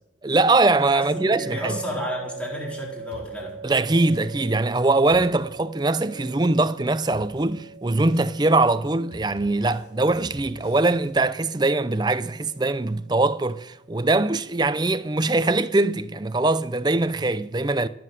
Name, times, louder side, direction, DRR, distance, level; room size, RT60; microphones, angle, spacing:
voice 1, 0.2-1.8 3.6-17.9, right 2 dB, 25° right, 0.5 m, -22 dB
sound 1, 0.8-13.9, right 5 dB, 40° right, 1.5 m, -41 dB
voice 2, 0.9-3.6, equal, 5° left, 4.1 m, -32 dB
sound 2, 3.1-3.7 4.1-4.6 5.0-5.7 6.1-6.6 7.1-7.7 8.1-8.6 9.1-11.1, left 1 dB, 60° left, 4.0 m, -47 dB
17.0 x 7.7 x 9.3 m
head